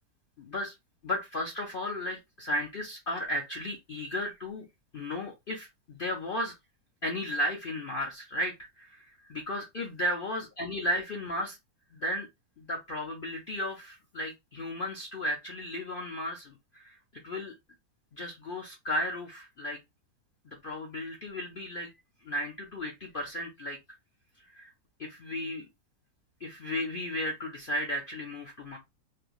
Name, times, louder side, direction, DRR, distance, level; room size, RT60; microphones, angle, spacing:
voice 1, 0.4-0.7 1.0-4.7 4.9-6.6 7.0-11.6 11.9-12.3 12.6-17.0 17.2-17.5 18.1-19.8 20.5-21.9 22.2-23.8 24.4-24.7 25.0-25.7 26.4-28.8, left 1 dB, 65° left, 0.5 m, -34 dB
3.2 x 2.6 x 2.3 m
omnidirectional pair, 1.7 m